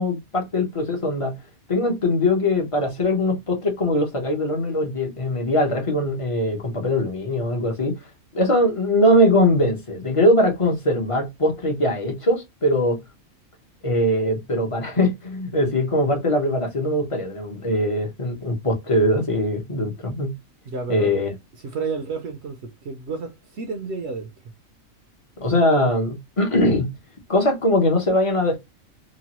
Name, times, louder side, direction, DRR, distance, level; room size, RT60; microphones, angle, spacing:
voice 1, 0.0-1.3 1.7-8.0 8.3-13.0 13.8-20.3 20.9-21.4 25.4-26.9 27.3-28.6, left 1 dB, 30° left, 0.6 m, -21 dB
voice 2, 20.7-21.1 21.6-24.3, right 4 dB, 60° right, 0.8 m, -31 dB
3.0 x 2.2 x 2.8 m
omnidirectional pair, 1.4 m